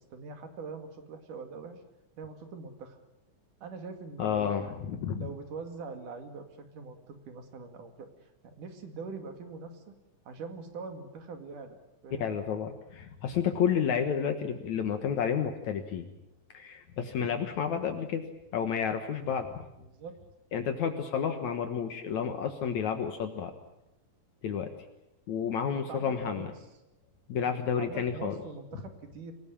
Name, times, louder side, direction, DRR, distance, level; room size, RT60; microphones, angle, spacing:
voice 1, 0.0-1.8 2.2-3.0 3.6-4.8 5.2-10.0 10.3-11.8 12.0-12.3 19.8-20.2 21.5-21.7 25.4-26.5 27.4-29.3, right 4 dB, 75° right, 6 dB, 3.8 m, -43 dB
voice 2, 4.2-5.3 12.2-16.1 16.5-18.2 18.5-19.6 20.5-23.5 24.4-24.7 25.3-26.5 27.3-28.3, left 7 dB, 65° left, 6 dB, 2.6 m, -30 dB
26.5 x 18.0 x 8.8 m, 0.92 s
omnidirectional pair, 3.7 m